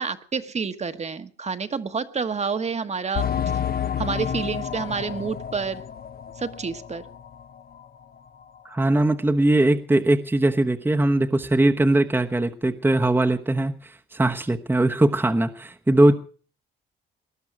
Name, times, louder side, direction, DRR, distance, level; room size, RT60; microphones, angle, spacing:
voice 1, 0.0-3.3 4.0-5.8 6.4-7.0, right 5 dB, 35° right, 9 dB, 1.3 m, -28 dB
sound 1, 3.1-7.4 7.7-7.8 8.4-8.5, left 8 dB, 50° left, 0.9 m, -30 dB
voice 2, 8.6-16.1, right 1 dB, 10° right, 4 dB, 1.0 m, -20 dB
19.5 x 11.5 x 6.0 m, 0.42 s
cardioid pair, 90°, 20 cm